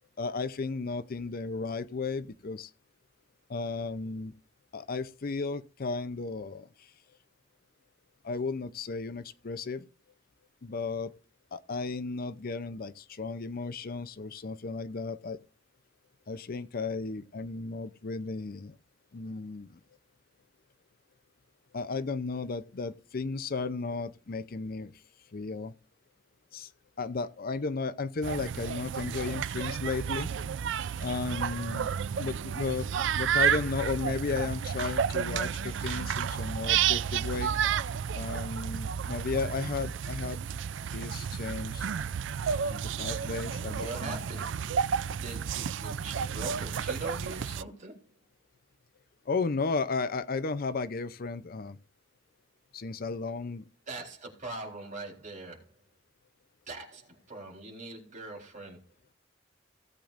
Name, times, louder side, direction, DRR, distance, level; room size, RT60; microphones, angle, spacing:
voice 1, 0.2-2.7 3.5-4.3 4.7-6.9 8.2-9.8 10.6-11.1 11.5-15.4 16.3-18.7 19.1-19.8 21.7-24.9 25.3-25.7 26.5-26.7 27.0-30.3 31.0-31.9 32.2-32.9 33.2-37.5 38.1-40.4 40.9-41.9 42.5-44.2 49.3-51.8 52.7-53.6, left 4 dB, 50° left, 0.6 m, -34 dB
sound 1, 28.2-47.6, right 7 dB, 70° right, 0.4 m, -31 dB
voice 2, 43.6-44.7 45.1-48.2 53.9-55.8 56.7-59.0, right 2 dB, 40° right, 3.9 m, -42 dB
17.0 x 8.6 x 2.5 m
head